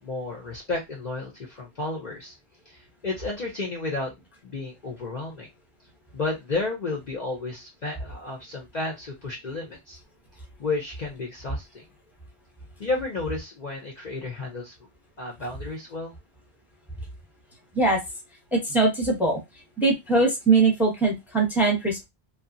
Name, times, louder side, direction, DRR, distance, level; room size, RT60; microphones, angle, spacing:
voice 1, 0.0-2.3 2.7-5.5 6.1-10.0 10.6-11.8 12.8-14.7 15.2-16.1, left 3 dB, 50° left, -1 dB, 0.6 m, -32 dB
voice 2, 18.5-19.4 19.8-22.1, right 3 dB, ahead, 0 dB, 0.7 m, -21 dB
2.7 x 2.3 x 2.6 m, 0.20 s
omnidirectional pair, 1.1 m